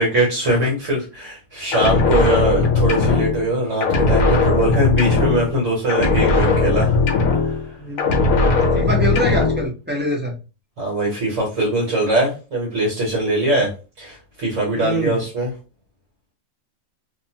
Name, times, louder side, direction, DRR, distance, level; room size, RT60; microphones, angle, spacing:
voice 1, 0.0-7.0 7.4-7.6 8.5-8.7 10.8-13.7 14.0-15.5, right 1 dB, 60° right, -3 dB, 1.3 m, -21 dB
sound 1, 1.7-3.5 3.8-5.6 5.9-7.7 8.0-9.7, left 3 dB, 75° left, 1.1 m, -18 dB
voice 2, 7.8-8.1 8.6-10.4 14.7-15.2, equal, 10° right, -3 dB, 0.5 m, -25 dB
2.8 x 2.3 x 2.8 m, 0.31 s
omnidirectional pair, 1.5 m